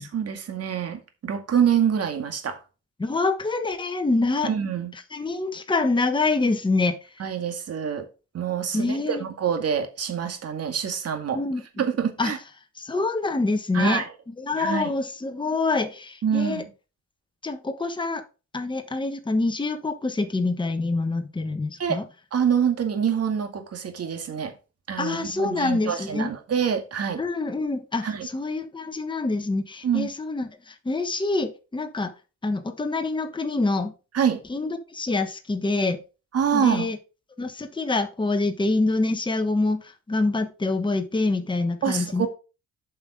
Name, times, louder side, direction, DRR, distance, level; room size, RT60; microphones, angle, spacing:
voice 1, 0.0-2.6 4.4-4.9 7.2-8.1 8.3-11.4 11.8-12.4 13.7-14.1 14.6-14.9 16.2-16.7 21.8-22.0 22.3-24.5 24.9-27.2 28.0-28.3 29.8-30.1 34.1-34.4 36.3-36.9 41.8-42.3, right 8 dB, 55° right, 2.1 m, -26 dB
voice 2, 3.0-4.5 5.1-7.2 8.7-9.2 11.3-11.6 12.2-12.3 12.8-14.0 14.4-16.7 17.4-18.2 18.5-22.0 25.0-26.3 27.2-32.1 32.4-33.9 34.5-36.0 36.5-37.0 37.4-42.3, left 3 dB, 15° left, 1.3 m, -26 dB
8.1 x 5.6 x 5.0 m
cardioid pair, 90°, 30 cm